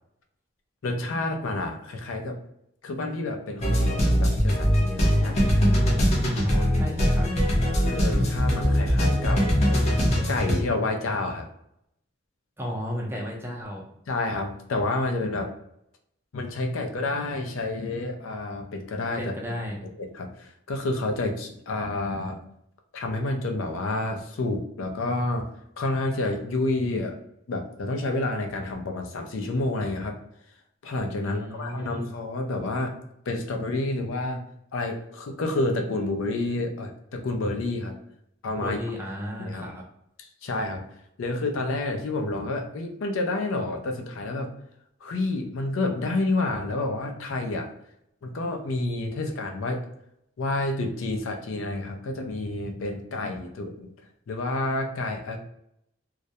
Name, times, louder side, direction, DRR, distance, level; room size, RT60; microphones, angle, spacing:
voice 1, 0.8-2.4 2.8-5.4 7.7-9.5 10.3-11.5 14.1-15.5 16.3-19.3 20.0-22.4 22.9-25.5 25.8-27.1 27.5-30.2 30.8-32.9 33.3-34.4 34.7-38.0 38.4-38.8 39.4-39.7 40.2-40.8 41.2-44.5 45.0-47.7 48.2-49.8 50.4-53.9 54.3-55.4, left 2 dB, 85° left, 3 dB, 0.4 m, -29 dB
sound 1, 3.6-10.6, equal, 35° left, 0.6 m, -22 dB
voice 2, 6.4-7.3 12.6-13.8 19.2-19.8 31.2-32.1 38.6-39.8, equal, 10° right, -2 dB, 0.4 m, -34 dB
2.3 x 2.0 x 2.7 m, 0.77 s
head